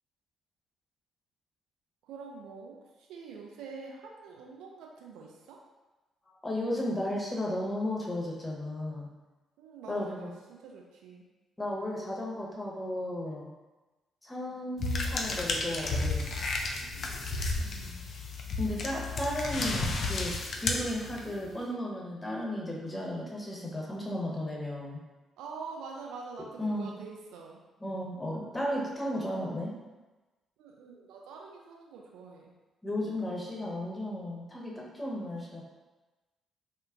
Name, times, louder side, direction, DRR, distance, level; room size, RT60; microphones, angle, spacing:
voice 1, 2.0-5.6 9.6-11.3 16.8-18.1 25.4-27.6 30.6-32.5, right 4 dB, 65° right, -1 dB, 0.3 m, -46 dB
voice 2, 6.4-9.1 9.9-10.3 11.6-13.5 14.2-16.3 18.6-25.0 26.6-26.9 27.8-29.7 32.8-35.6, left 1 dB, 20° left, -3 dB, 0.8 m, -34 dB
sound 1, 14.8-21.5, left 3 dB, 50° left, 0.3 m, -32 dB
3.5 x 2.2 x 2.4 m, 1.2 s
figure-of-eight pair, 40°, 0 cm